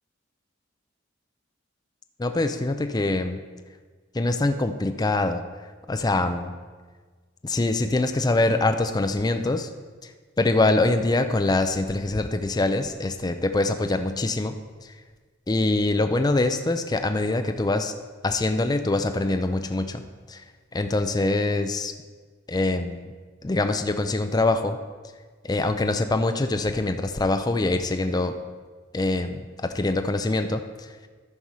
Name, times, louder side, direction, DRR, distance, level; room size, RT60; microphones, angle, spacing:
voice 1, 2.2-3.4 4.1-5.4 5.9-6.5 7.4-9.7 10.4-14.6 15.5-17.9 18.2-20.0 20.3-20.4 20.7-21.9 22.5-23.1 23.4-24.8 25.4-28.3 28.9-30.9, left 2 dB, 20° left, 7 dB, 0.5 m, -24 dB
13.0 x 4.7 x 5.5 m, 1.4 s
head